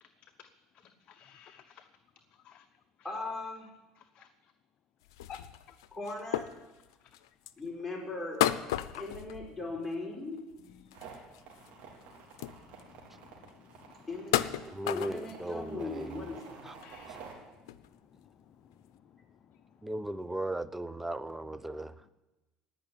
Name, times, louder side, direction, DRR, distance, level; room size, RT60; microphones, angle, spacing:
voice 1, 0.0-0.5 0.7-1.9 2.4-2.7 4.0-4.5 5.3-5.4 5.7-5.8 10.8-11.2 12.6-14.1 16.8-19.2 19.5-19.6, left 8 dB, 50° left, 8 dB, 0.8 m, -56 dB
voice 2, 3.0-3.7 5.9-6.5 7.6-8.4 8.9-10.4 14.1-14.5 14.9-16.7, left 2 dB, 10° left, -2 dB, 5.1 m, -39 dB
sound 1, 5.0-7.6 8.4-10.1 10.4-11.7 12.0-12.1 12.3-13.0 13.5-13.6 14.1-15.5 16.0-16.1 16.4-16.9 17.3-17.4 17.7-17.9 18.7-18.8, left 13 dB, 90° left, 0.6 m, -34 dB
sound 2, 10.9-17.3, right 6 dB, 65° right, 3.8 m, -51 dB
voice 3, 14.6-16.7 17.1-17.2 19.8-22.1, right 1 dB, 10° right, 16 dB, 0.6 m, -37 dB
17.5 x 5.9 x 9.7 m, 1.1 s
supercardioid pair, 95°, 2 cm